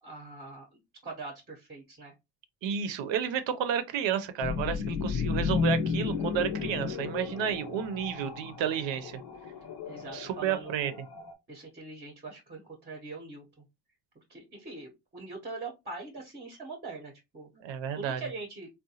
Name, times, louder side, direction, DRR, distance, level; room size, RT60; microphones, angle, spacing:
voice 1, 0.0-2.1 9.8-10.9 11.5-13.6 14.3-17.5 17.9-18.7, right 3 dB, 20° right, 0.7 m, -42 dB
voice 2, 2.6-9.2 10.1-10.9 17.6-18.2, right 8 dB, 65° right, 0.6 m, -31 dB
sound 1, 4.4-11.3, left 5 dB, 45° left, 0.7 m, -33 dB
3.7 x 2.2 x 2.7 m
cardioid pair, 150°, 48 cm